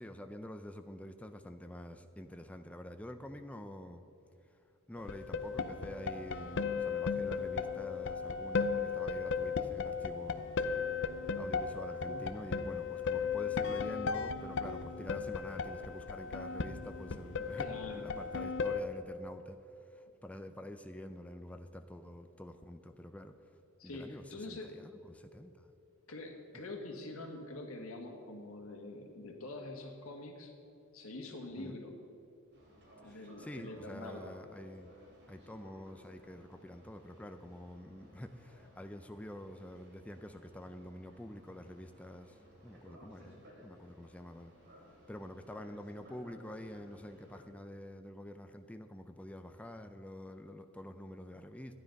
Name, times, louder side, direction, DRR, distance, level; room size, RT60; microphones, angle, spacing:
voice 1, 0.0-4.1 4.9-10.4 11.4-23.4 23.8-25.7 31.6-31.8 33.0-35.0 35.3-44.5 45.1-51.8, left 1 dB, 5° left, 7 dB, 0.4 m, -47 dB
sound 1, 5.0-18.8, left 5 dB, 60° left, 0.6 m, -36 dB
voice 2, 17.6-18.1 23.8-24.8 26.1-30.6 30.9-31.9 33.0-34.4 43.0-43.3, left 2 dB, 85° left, 3 dB, 1.7 m, -45 dB
Boat Water vehicle, 32.5-47.4, equal, 60° right, 2.9 m, -59 dB
12.5 x 9.8 x 5.2 m, 2.9 s
head